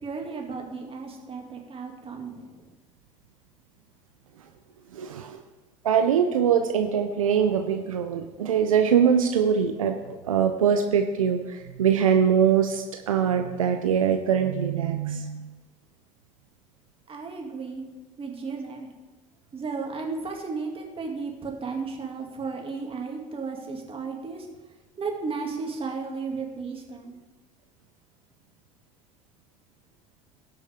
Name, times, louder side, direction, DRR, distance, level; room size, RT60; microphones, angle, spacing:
voice 1, 0.0-2.7 17.1-17.8 18.2-18.9 19.5-24.5 25.0-27.2, right 4 dB, 35° right, 1 dB, 2.4 m, -34 dB
voice 2, 4.9-5.4 5.8-15.5, right 7 dB, 90° right, 5 dB, 0.6 m, -23 dB
17.5 x 6.2 x 3.6 m, 1.2 s
hypercardioid pair, 65°, 17 cm